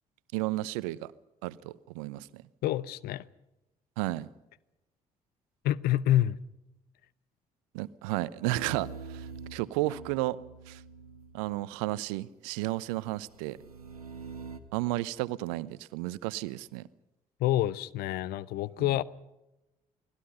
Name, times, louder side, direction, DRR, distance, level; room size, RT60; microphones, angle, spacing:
voice 1, 0.3-1.1 1.4-2.4 4.0-4.3 7.7-10.4 10.7-10.8 11.3-13.6 14.7-16.9 18.8-19.0, right 18 dB, 65° right, 19 dB, 0.8 m, -33 dB
voice 2, 2.6-3.2 5.6-6.4 17.4-19.0, left 13 dB, 55° left, 20 dB, 0.8 m, -27 dB
sound 1, 8.5-11.5 12.9-14.6, right 5 dB, 85° right, 1.3 m, -45 dB
29.5 x 19.0 x 5.5 m, 0.97 s
figure-of-eight pair, 45°, 19 cm